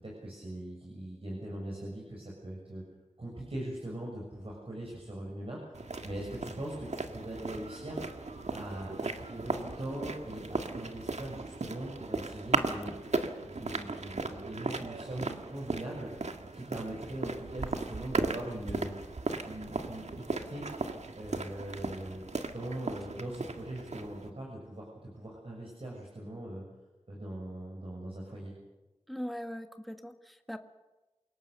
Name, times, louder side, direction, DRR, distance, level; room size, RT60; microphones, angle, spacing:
voice 1, 0.0-2.8 3.2-8.1 8.5-12.9 13.4-16.1 16.5-18.9 19.4-20.6 21.2-22.2 22.5-26.6 27.1-28.5, right 1 dB, 55° right, -3 dB, 6.5 m, -41 dB
sound 1, 5.7-24.3, right 3 dB, 80° right, 1.7 m, -37 dB
voice 2, 29.1-30.6, equal, ahead, 7 dB, 1.7 m, -40 dB
28.0 x 18.5 x 6.8 m, 1.1 s
wide cardioid pair, 45°, 11 cm